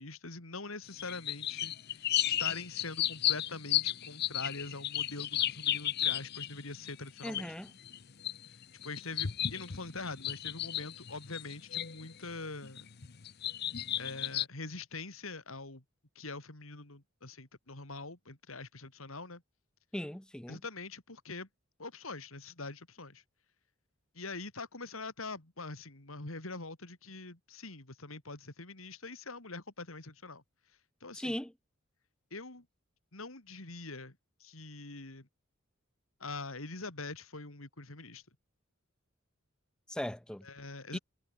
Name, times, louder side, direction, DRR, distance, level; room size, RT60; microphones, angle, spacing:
voice 1, 0.0-7.5 8.5-12.9 14.0-15.8 16.2-19.4 20.5-21.5 21.8-23.2 24.2-30.4 31.0-31.4 32.3-32.7 33.1-35.3 36.2-38.2 40.4-41.0, left 3 dB, 85° left, 3.5 m, -44 dB
sound 1, 0.9-6.9 7.2-12.3 12.6-14.4, left 12 dB, 50° left, 0.7 m, -34 dB
voice 2, 7.2-7.7 19.9-20.6 31.1-31.5 39.9-40.5 40.9-41.0, left 1 dB, 5° left, 0.4 m, -38 dB
head